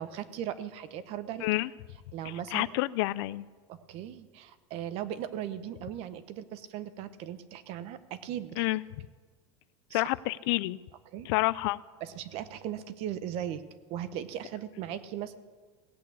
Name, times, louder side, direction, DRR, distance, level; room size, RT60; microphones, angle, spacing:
voice 1, 0.0-1.5 2.1-2.8 3.7-8.7 9.9-10.0 11.1-11.3 12.0-13.6 13.9-15.4, right 10 dB, 40° right, 13 dB, 0.8 m, -38 dB
voice 2, 1.4-1.7 2.3-3.5 8.6-8.8 9.9-10.8 11.3-11.8, left 20 dB, 60° left, 19 dB, 0.4 m, -29 dB
17.0 x 8.4 x 8.4 m, 1.5 s
supercardioid pair, 170°, 15 cm